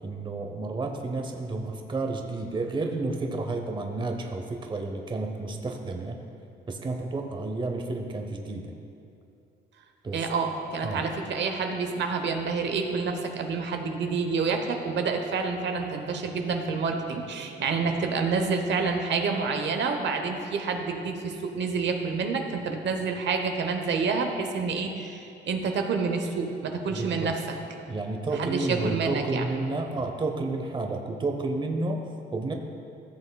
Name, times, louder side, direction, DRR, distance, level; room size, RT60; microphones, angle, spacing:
voice 1, 0.0-6.2 6.7-8.7 10.0-10.3 10.8-11.1 26.9-27.3 27.9-32.5, right 2 dB, 25° right, 3 dB, 0.7 m, -31 dB
voice 2, 10.1-27.4 28.4-29.4, right 4 dB, 65° right, 4 dB, 0.9 m, -28 dB
14.5 x 6.9 x 2.3 m, 2.6 s
cardioid pair, 90°, 20 cm